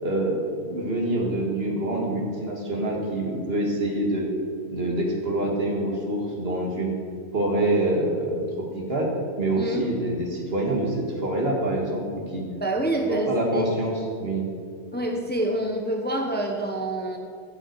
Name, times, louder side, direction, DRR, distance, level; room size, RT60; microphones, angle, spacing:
voice 1, 0.0-0.4 0.7-4.3 4.7-6.9 7.3-8.4 8.7-12.4 13.0-14.5, right 1 dB, 60° right, -1 dB, 2.1 m, -26 dB
voice 2, 12.6-13.7 14.9-17.2, right 1 dB, 10° left, 2 dB, 0.8 m, -26 dB
14.0 x 7.8 x 4.7 m, 2.2 s
omnidirectional pair, 1.2 m